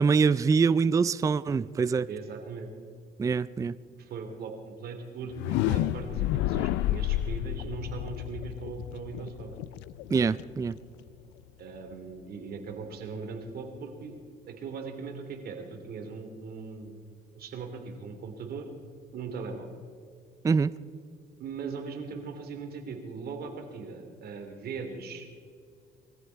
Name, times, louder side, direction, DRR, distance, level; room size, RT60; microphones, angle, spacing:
voice 1, 0.0-2.1 3.2-3.8 10.1-10.8 20.4-20.7, right 5 dB, 20° right, 17 dB, 0.4 m, -24 dB
voice 2, 2.1-2.7 4.0-9.5 11.6-14.1 14.5-17.0 17.3-18.7 19.1-19.7 21.4-25.3, right 5 dB, 60° right, 4 dB, 2.7 m, -39 dB
sound 1, 5.2-11.1, left 14 dB, 85° left, 0.4 m, -31 dB
21.0 x 14.0 x 4.6 m, 2.2 s
cardioid pair, 90°, 18 cm